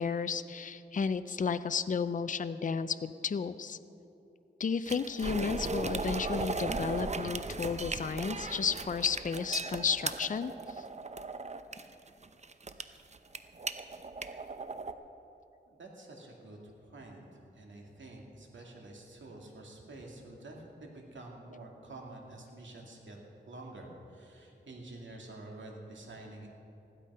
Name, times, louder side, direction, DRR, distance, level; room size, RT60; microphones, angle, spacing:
voice 1, 0.0-3.8 4.6-10.8, left 6 dB, 45° left, 12 dB, 0.5 m, -33 dB
sound 1, 4.9-14.9, right 3 dB, 35° right, 0.7 m, -37 dB
voice 2, 15.7-17.2 17.5-23.2 23.5-26.5, right 2 dB, 80° right, 0 dB, 2.4 m, -48 dB
15.5 x 12.0 x 5.5 m, 3.0 s
wide cardioid pair, 75°, 19 cm